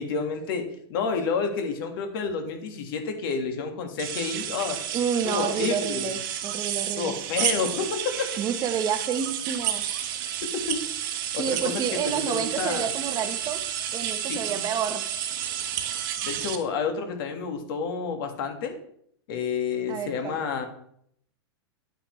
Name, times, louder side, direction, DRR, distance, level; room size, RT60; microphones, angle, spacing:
voice 1, 0.0-4.8 5.2-6.1 7.0-8.3 10.2-10.3 10.7-10.8 11.3-11.7 12.0-12.9 14.3-14.6 16.2-18.8 19.3-20.7, left 5 dB, 60° left, 5 dB, 1.8 m, -30 dB
sound 1, 4.0-16.6, right 10 dB, 55° right, 1.4 m, -31 dB
voice 2, 4.9-7.1 8.4-9.8 11.3-13.6 13.9-15.0 19.9-20.4, right 8 dB, 30° right, 8 dB, 1.0 m, -29 dB
9.8 x 8.8 x 3.2 m, 0.67 s
hypercardioid pair, 130°, 13 cm